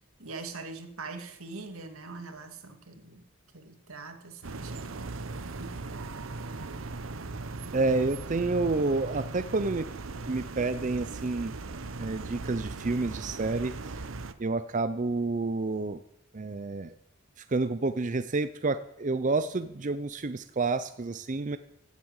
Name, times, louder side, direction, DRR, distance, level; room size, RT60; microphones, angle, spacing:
voice 1, 0.0-3.3 3.5-5.1 5.4-6.3, right 3 dB, 85° right, 6 dB, 2.2 m, -43 dB
sound 1, 4.4-14.3, right 3 dB, 70° right, 0.9 m, -38 dB
voice 2, 7.7-9.9 10.3-11.5 12.0-14.1 14.4-16.0 16.3-16.9 17.4-21.6, right 3 dB, 35° right, 11 dB, 0.5 m, -29 dB
16.0 x 8.3 x 8.1 m, 0.83 s
head